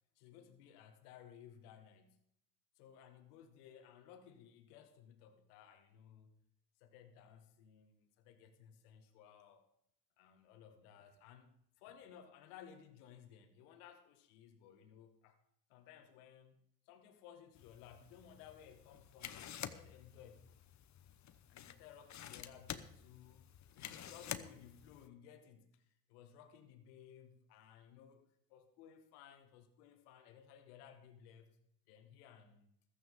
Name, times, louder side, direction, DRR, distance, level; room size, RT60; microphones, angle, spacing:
voice 1, 0.2-2.2 2.8-6.3 6.8-9.7 10.2-15.4 15.7-20.5 21.5-31.6 31.9-32.7, left 8 dB, 75° left, 7 dB, 1.8 m, -59 dB
sound 1, 17.6-25.1, left 10 dB, 35° left, 1.1 m, -50 dB
15.0 x 13.5 x 3.8 m, 0.74 s
hypercardioid pair, 70°, 46 cm